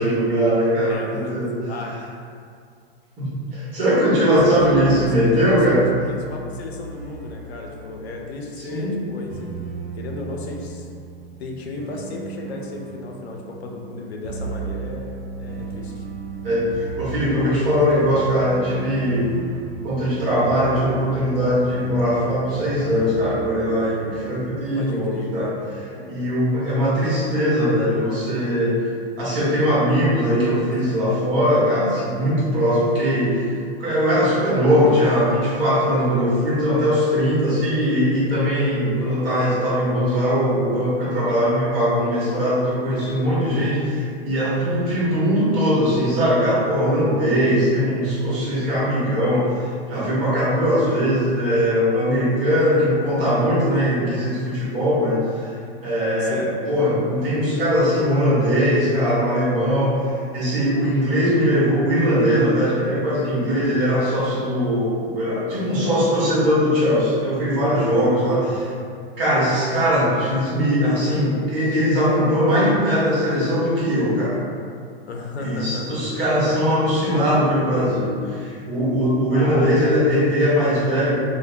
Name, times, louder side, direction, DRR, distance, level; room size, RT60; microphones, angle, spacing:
voice 1, 0.0-1.5 3.2-5.8 8.7-9.0 16.4-19.3 19.8-25.5 25.9-28.9 29.2-33.5 33.8-55.5 55.8-68.6 69.2-74.4 75.4-81.1, equal, 65° right, -8 dB, 1.2 m, -20 dB
voice 2, 0.9-1.4 1.6-2.0 4.4-9.5 9.9-10.9 11.4-16.0 24.8-25.6 30.7-31.0 44.9-45.3 56.2-56.5 68.1-68.5 75.0-76.1 79.3-79.8, left 3 dB, 85° left, 0 dB, 0.5 m, -34 dB
sound 1, 4.3-24.1, right 4 dB, 80° right, 0.5 m, -36 dB
2.4 x 2.0 x 2.7 m, 2.3 s
hypercardioid pair, 100°, 31 cm